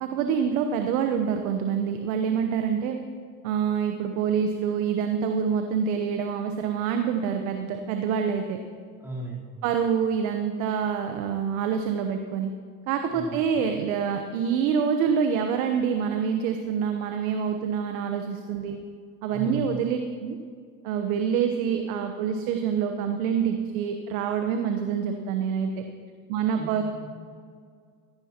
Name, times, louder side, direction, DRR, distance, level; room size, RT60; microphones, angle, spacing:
voice 1, 0.0-3.0 3.4-8.6 9.6-12.5 12.9-18.8 19.2-20.4 20.8-25.7 26.3-26.8, right 7 dB, 70° right, 5 dB, 1.1 m, -26 dB
voice 2, 9.0-9.6 13.1-13.4 19.3-19.7 26.5-27.1, right 2 dB, 5° right, -7 dB, 3.7 m, -37 dB
15.5 x 14.5 x 3.0 m, 2.1 s
hypercardioid pair, 85°, 43 cm